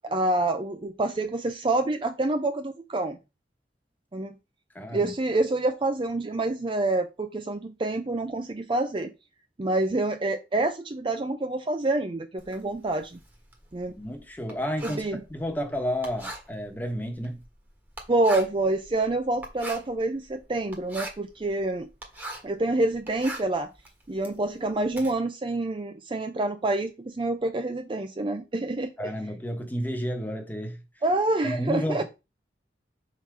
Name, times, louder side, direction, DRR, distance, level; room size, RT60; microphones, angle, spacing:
voice 1, 0.0-3.2 4.1-4.3 4.9-9.1 9.6-13.2 13.7-14.0 14.8-15.2 18.1-21.9 22.4-23.7 24.1-29.1 31.0-32.0, right 2 dB, 30° right, 0.5 m, -27 dB
voice 2, 4.7-5.1 14.0-17.4 29.0-30.8 31.4-32.0, equal, 10° left, 1.1 m, -31 dB
Writing, 12.4-22.6 22.9-25.1, right 1 dB, 10° right, 1.3 m, -41 dB
5.8 x 3.8 x 4.6 m
head